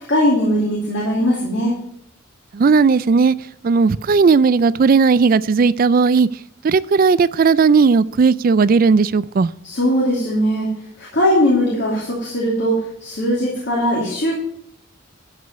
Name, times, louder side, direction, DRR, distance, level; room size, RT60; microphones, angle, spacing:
voice 1, 0.1-1.7 9.6-14.4, equal, 55° left, 2.7 m, -19 dB
voice 2, 2.5-3.4 3.6-6.3 6.6-9.5, right 5 dB, 40° right, 0.3 m, -15 dB
12.5 x 5.0 x 6.7 m
head